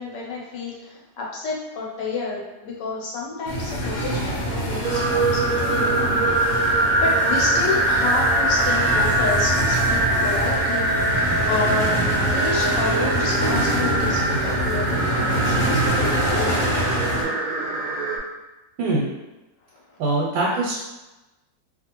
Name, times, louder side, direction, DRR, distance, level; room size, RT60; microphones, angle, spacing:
voice 1, 0.0-10.9 11.5-12.0 12.2-16.8, left 3 dB, 75° left, -2 dB, 1.3 m, -30 dB
sound 1, 3.5-17.2, equal, 60° left, 0.9 m, -26 dB
sound 2, 4.8-18.2, right 2 dB, 65° right, 0.8 m, -22 dB
voice 2, 20.0-20.8, right 2 dB, 90° right, -4 dB, 1.3 m, -22 dB
2.8 x 2.5 x 2.8 m, 1.0 s
omnidirectional pair, 1.9 m